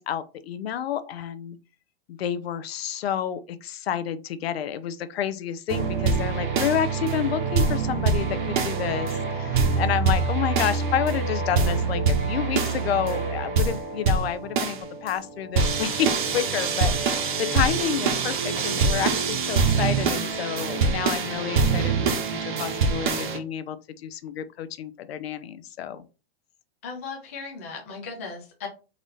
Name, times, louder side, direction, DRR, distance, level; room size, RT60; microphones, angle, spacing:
voice 1, 0.0-1.6 2.1-26.0, left 9 dB, 75° left, 0.7 m, -29 dB
sound 1, 5.7-23.4, right 4 dB, 50° right, 1.0 m, -25 dB
voice 2, 26.8-28.7, left 4 dB, 15° left, 0.3 m, -37 dB
4.0 x 3.2 x 4.0 m
supercardioid pair, 175°, 31 cm